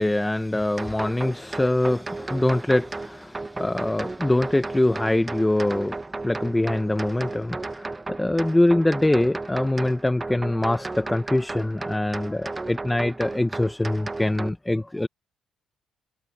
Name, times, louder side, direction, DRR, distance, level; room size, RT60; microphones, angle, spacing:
voice 1, 0.0-15.1, left 1 dB, 10° left, 1.0 m, -24 dB
sound 1, 0.8-14.5, right 3 dB, 20° right, 1.6 m, -34 dB
cardioid pair, 90°, 0 cm